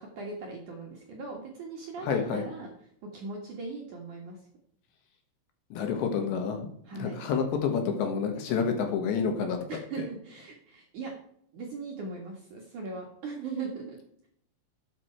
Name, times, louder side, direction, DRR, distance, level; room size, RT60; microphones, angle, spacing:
voice 1, 0.0-2.7 3.1-4.4 6.9-7.2 9.7-11.1 11.5-14.0, right 4 dB, 55° right, 0 dB, 2.3 m, -39 dB
voice 2, 2.0-2.5 5.7-6.7 6.9-9.6 10.0-10.1, left 6 dB, 70° left, 4 dB, 3.5 m, -29 dB
12.5 x 8.4 x 4.6 m, 0.69 s
omnidirectional pair, 5.7 m